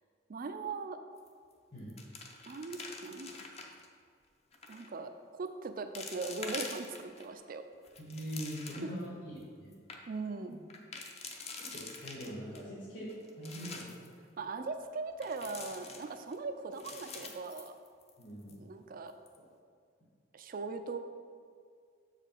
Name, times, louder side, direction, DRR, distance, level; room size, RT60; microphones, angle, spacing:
voice 1, 0.3-1.0 2.4-3.3 4.7-7.6 8.8-8.9 10.1-10.6 14.4-17.7 18.6-19.1 20.3-21.0, right 4 dB, 50° right, 8 dB, 0.4 m, -40 dB
sound 1, 1.2-1.5 1.8-3.9 4.5-4.9 5.4-5.5 5.9-7.3 7.7-9.0 9.4-9.5 9.7-10.0 10.7-12.6 13.1-14.1 15.2-16.4 16.7-18.2 18.5-18.6 19.1-19.4, left 4 dB, 35° left, 0.7 m, -46 dB
voice 2, 8.0-9.7 11.5-14.1 18.2-18.6, equal, 60° left, -9 dB, 1.7 m, -43 dB
6.7 x 4.9 x 4.6 m, 2.1 s
head